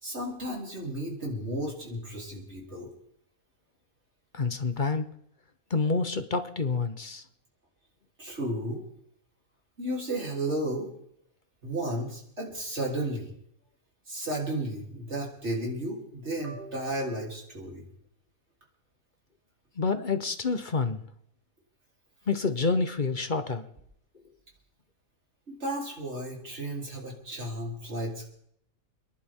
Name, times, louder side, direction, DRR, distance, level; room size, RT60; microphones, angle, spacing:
voice 1, 0.0-2.9 8.2-8.8 9.8-10.9 11.6-13.3 14.1-17.9 25.5-28.3, right 1 dB, 50° right, -2 dB, 3.8 m, -33 dB
voice 2, 4.3-5.1 5.7-7.2 19.8-21.0 22.3-23.6, left 4 dB, 40° left, 9 dB, 1.0 m, -28 dB
28.0 x 11.0 x 3.7 m, 0.72 s
omnidirectional pair, 1.5 m